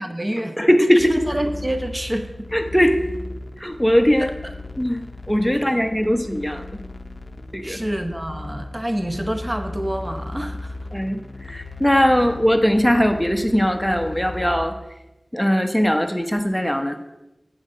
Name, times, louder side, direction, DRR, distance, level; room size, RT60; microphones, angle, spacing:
voice 1, 0.0-0.6 1.1-2.5 4.2-4.5 5.7-5.8 7.6-10.7, right 1 dB, 25° right, 6 dB, 0.9 m, -27 dB
voice 2, 0.6-1.1 2.5-3.0 3.6-4.3 4.8-6.6 7.5-7.8 10.9-11.2 11.4-14.8 15.3-17.0, equal, 5° left, 6 dB, 0.9 m, -19 dB
sound 1, 1.0-14.7, left 2 dB, 40° left, 0.7 m, -36 dB
8.6 x 4.9 x 7.5 m, 0.94 s
wide cardioid pair, 45°, 0 cm